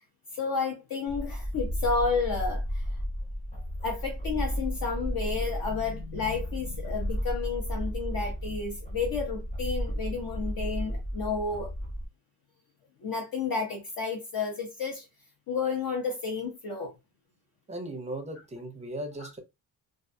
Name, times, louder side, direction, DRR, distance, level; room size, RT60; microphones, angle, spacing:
voice 1, 0.3-2.9 3.8-11.7 13.0-15.1 15.5-16.9 19.2-19.3, left 4 dB, 60° left, 0.8 m, -31 dB
sound 1, 1.1-12.1, equal, 15° left, 0.7 m, -33 dB
voice 2, 17.7-19.4, right 1 dB, 15° right, 0.5 m, -37 dB
2.4 x 2.3 x 2.6 m
cardioid pair, 135°, 40 cm